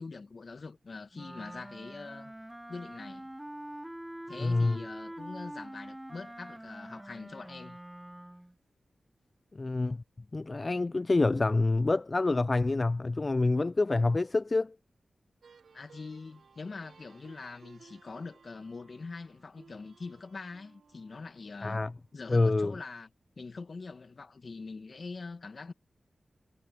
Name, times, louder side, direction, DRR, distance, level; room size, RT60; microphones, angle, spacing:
voice 1, 0.0-2.3 2.7-3.3 4.3-7.8 15.7-21.8 22.1-23.1 23.4-25.7, left 4 dB, 60° left, 1.5 m, -43 dB
Wind instrument woodwind instrument, 1.1-8.5, right 1 dB, 10° right, 1.0 m, -45 dB
voice 2, 4.4-4.8 9.5-10.0 10.3-14.8 21.6-21.9 22.3-22.7, left 3 dB, 40° left, 0.4 m, -27 dB
sound 1, 15.4-22.2, right 5 dB, 80° right, 4.1 m, -59 dB
cardioid pair, 40°, 0 cm